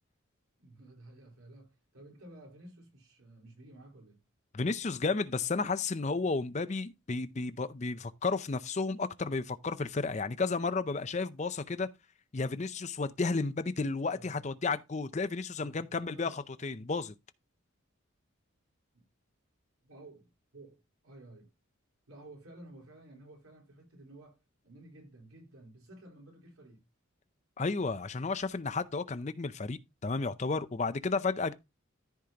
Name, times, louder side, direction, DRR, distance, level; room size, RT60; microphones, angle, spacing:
voice 1, 0.6-4.2 14.0-14.5 15.6-16.4 18.9-19.1 19.8-21.5 22.1-26.8, right 1 dB, 90° right, 4.3 m, -53 dB
voice 2, 4.5-11.9 12.3-17.1 27.6-31.5, left 4 dB, 35° left, 0.5 m, -32 dB
14.0 x 5.0 x 2.8 m
head